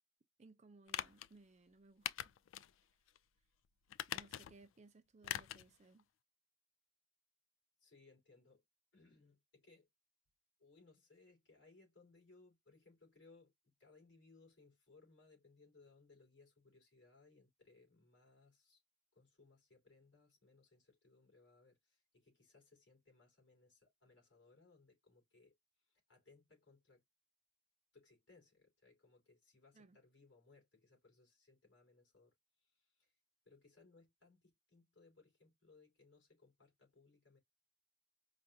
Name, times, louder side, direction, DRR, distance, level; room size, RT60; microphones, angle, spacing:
voice 1, 0.4-2.3 4.1-6.1 29.7-30.0, right 3 dB, 35° right, 0.5 m, -63 dB
sound 1, 0.9-1.3 2.1-2.7 3.1-3.2 3.9-4.7 5.2-5.7 6.0-6.1, left 11 dB, 80° left, 0.3 m, -43 dB
voice 2, 7.8-8.6 8.9-9.9 10.6-18.8 19.1-27.0 27.9-33.1 33.4-37.4, left 3 dB, 60° left, 3.4 m, -67 dB
5.0 x 2.3 x 2.7 m
head